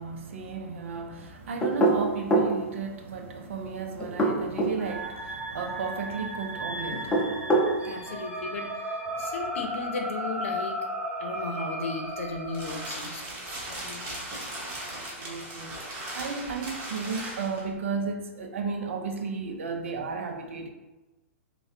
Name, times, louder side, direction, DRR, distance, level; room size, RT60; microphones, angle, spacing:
voice 1, 0.0-8.5 14.9-20.7, right 4 dB, 65° right, 5 dB, 0.6 m, -34 dB
sound 1, 1.6-2.6 4.0-4.8 6.9-7.7, right 2 dB, 15° left, 0.6 m, -23 dB
sound 2, 4.8-12.9, equal, 10° right, 0.8 m, -35 dB
voice 2, 7.8-8.7 9.2-10.8 11.2-13.2 13.5-14.2, left 3 dB, 60° left, 3 dB, 0.7 m, -35 dB
sound 3, 12.0-17.7, right 1 dB, 30° right, 1.3 m, -38 dB
5.5 x 2.2 x 2.8 m, 1.1 s
figure-of-eight pair, 110°, 8 cm